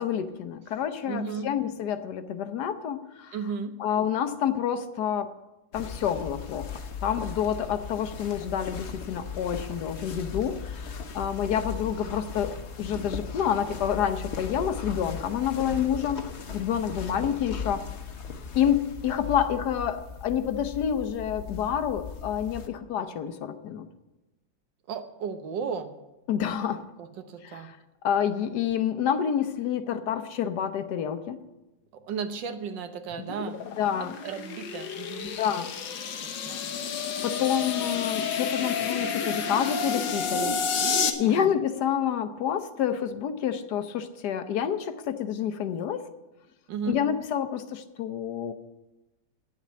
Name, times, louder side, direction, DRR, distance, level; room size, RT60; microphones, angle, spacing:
voice 1, 0.0-3.4 3.8-5.3 5.7-6.7 7.0-12.5 12.8-17.8 18.5-23.9 26.3-26.8 27.4-27.8 28.0-31.4 33.8-34.1 35.2-35.7 37.2-46.0 46.9-48.5, left 9 dB, 70° left, 10 dB, 1.3 m, -28 dB
voice 2, 1.0-1.5 3.3-3.7 24.9-25.9 27.0-27.7 31.9-33.7 34.0-35.4 36.2-36.7 39.1-39.2 41.2-41.5 46.7-47.0, right 6 dB, 85° right, 8 dB, 1.7 m, -35 dB
sound 1, 5.7-22.7, left 6 dB, 50° left, 0.9 m, -38 dB
sound 2, 33.1-41.1, left 6 dB, 90° left, 1.7 m, -30 dB
9.5 x 7.4 x 9.3 m, 1.0 s
omnidirectional pair, 1.9 m